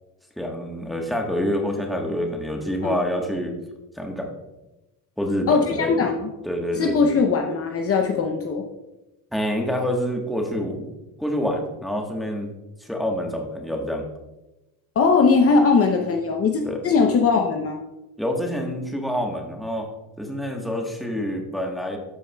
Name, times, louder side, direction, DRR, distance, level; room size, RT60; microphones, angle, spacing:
voice 1, 0.4-3.5 3.9-4.3 5.2-6.0 6.4-7.2 9.3-10.9 11.2-12.5 12.8-14.0 16.6-16.8 18.2-19.9 20.2-22.0, equal, ahead, 1 dB, 1.2 m, -27 dB
voice 2, 5.5-6.3 6.8-8.7 15.0-17.8, left 4 dB, 40° left, 3 dB, 0.7 m, -20 dB
13.0 x 4.7 x 2.3 m, 1.0 s
cardioid pair, 105°, 37 cm